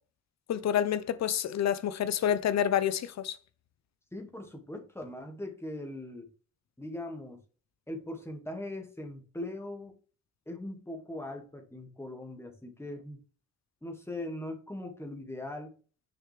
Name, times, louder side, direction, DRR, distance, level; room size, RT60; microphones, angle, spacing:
voice 1, 0.5-3.4, left 9 dB, 60° left, 0.8 m, -28 dB
voice 2, 4.1-6.3 6.8-7.4 7.9-10.0 10.5-13.2 13.8-15.8, left 1 dB, 10° left, 2.0 m, -40 dB
6.7 x 5.6 x 3.4 m
cardioid pair, 90°, 30 cm